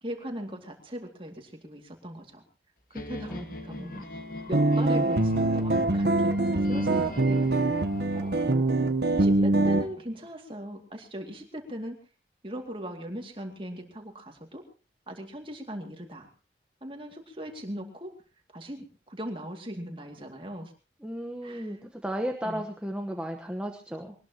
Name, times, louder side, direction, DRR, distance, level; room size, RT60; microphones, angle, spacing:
voice 1, 0.0-2.4 2.9-3.9 4.5-7.4 8.1-8.7 9.1-12.0 12.4-14.7 15.1-16.3 16.8-18.2 18.5-20.7 21.4-21.8 22.4-22.6, equal, 30° right, 3 dB, 2.4 m, -39 dB
sound 1, 2.9-8.4, left 1 dB, 50° left, 1.8 m, -41 dB
sound 2, 4.5-9.9, right 2 dB, 65° right, 1.1 m, -24 dB
voice 2, 21.0-24.1, equal, 5° right, 2 dB, 1.1 m, -34 dB
23.0 x 19.5 x 3.0 m, 0.34 s
head